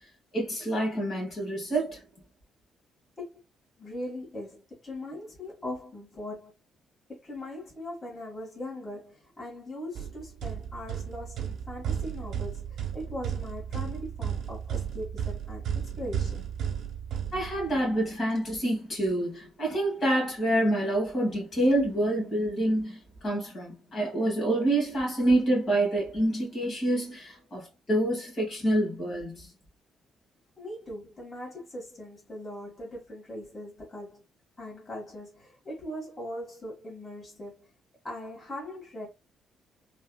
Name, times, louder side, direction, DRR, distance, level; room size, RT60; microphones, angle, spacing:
voice 1, 0.3-2.0 17.3-23.0 23.2-29.5, right 1 dB, 50° left, 1.8 m, -27 dB
voice 2, 3.8-6.5 7.2-16.5 30.6-34.2 34.6-37.7 38.0-39.1, left 1 dB, 25° left, 1.7 m, -40 dB
sound 1, 9.9-17.9, right 8 dB, 70° right, 0.9 m, -34 dB
3.3 x 2.4 x 2.3 m
cardioid pair, 90°, 0 cm